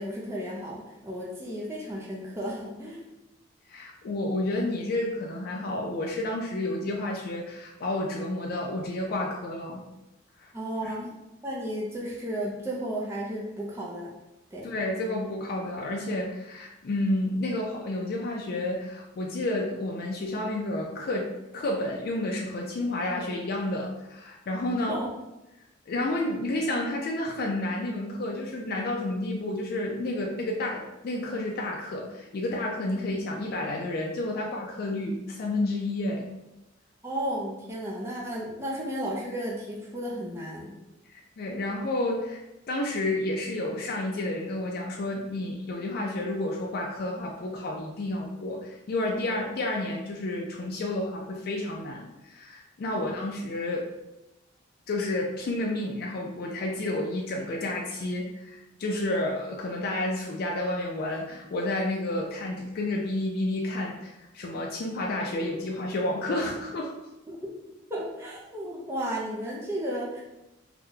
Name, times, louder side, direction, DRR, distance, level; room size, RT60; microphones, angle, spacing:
voice 1, 0.0-3.0 10.5-11.1 11.4-14.1 14.5-14.7 24.7-25.1 37.0-40.7 52.9-53.0 67.3-67.4 67.9-70.2, right 1 dB, 15° right, -4 dB, 0.4 m, -33 dB
voice 2, 3.7-9.8 10.4-10.5 10.8-10.9 14.6-25.0 25.9-36.3 41.1-42.4 42.7-53.9 54.9-66.9, left 1 dB, 50° left, -1 dB, 0.3 m, -30 dB
2.8 x 2.1 x 3.6 m, 0.96 s
head